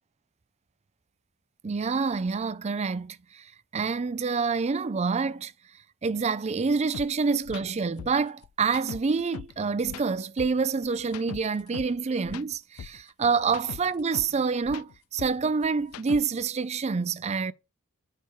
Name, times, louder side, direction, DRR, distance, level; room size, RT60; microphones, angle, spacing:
voice 1, 1.6-5.5 6.0-17.5, right 4 dB, 30° right, 0.4 m, -27 dB
sound 1, 6.9-7.1 7.4-7.6 8.0-9.6 9.8-12.0 12.2-14.4 14.6-16.5, left 8 dB, 75° left, 0.3 m, -41 dB
6.6 x 4.5 x 4.9 m
head